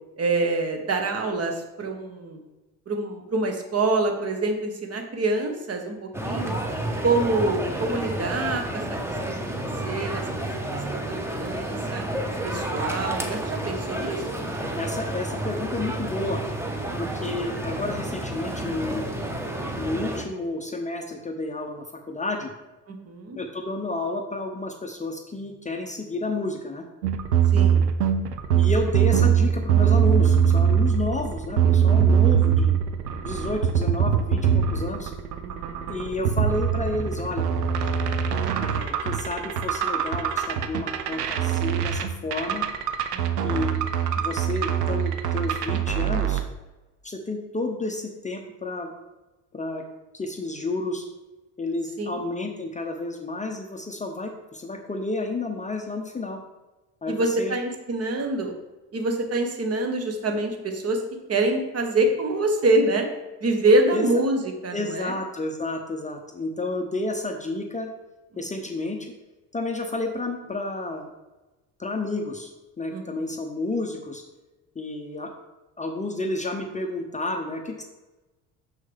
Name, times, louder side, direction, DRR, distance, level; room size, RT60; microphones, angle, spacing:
voice 1, 0.2-2.4 2.9-6.6 7.0-9.0 9.3-10.5 10.9-12.0 12.4-14.4 22.9-23.4 27.5-27.8 35.4-35.9 43.1-43.5 52.0-52.2 57.1-58.5 58.9-61.0 61.3-63.1 63.4-65.1 72.9-73.2, right 2 dB, 30° right, 4 dB, 1.5 m, -26 dB
sound 1, 6.1-20.2, right 1 dB, 5° right, 1.1 m, -30 dB
voice 2, 14.8-16.4 17.0-19.0 19.8-22.5 23.4-26.8 28.5-32.8 33.2-35.1 35.9-37.5 38.6-42.7 43.4-43.7 44.2-46.4 47.0-48.9 49.5-49.8 50.1-51.1 51.6-56.4 57.0-57.6 63.9-64.1 64.7-67.9 68.4-69.1 69.5-71.1 71.8-74.2 74.7-75.3 75.8-77.8, left 2 dB, 15° left, 3 dB, 0.8 m, -31 dB
sound 2, 27.0-46.4, right 8 dB, 80° right, 0.7 m, -22 dB
6.4 x 6.4 x 3.6 m, 1.1 s
figure-of-eight pair, 60°, 47 cm